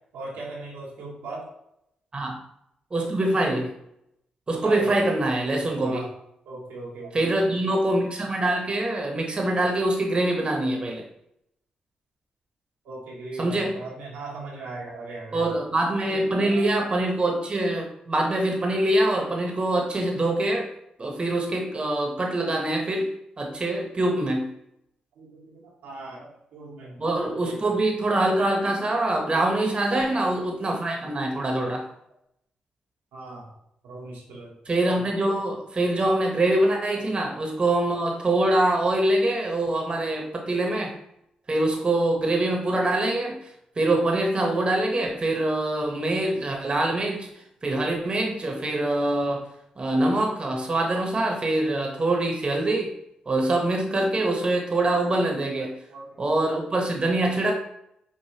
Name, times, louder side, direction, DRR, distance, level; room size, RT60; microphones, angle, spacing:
voice 1, 0.1-1.5 4.6-4.9 5.8-6.1 6.4-7.2 12.8-15.5 16.1-16.7 25.2-27.8 29.9-30.2 33.1-33.5 33.8-34.5 55.5-55.6 55.9-56.1, right 3 dB, 85° right, -4 dB, 1.1 m, -39 dB
voice 2, 2.9-3.7 4.5-6.1 7.1-11.0 13.4-13.8 15.3-20.7 21.0-24.5 27.0-31.9 34.6-41.0 41.5-43.4 43.8-47.3 47.6-49.5 49.8-52.9 53.3-55.8 56.2-57.6, right 1 dB, 35° right, 0 dB, 1.0 m, -24 dB
4.9 x 2.5 x 2.9 m, 0.77 s
supercardioid pair, 50°, 3 cm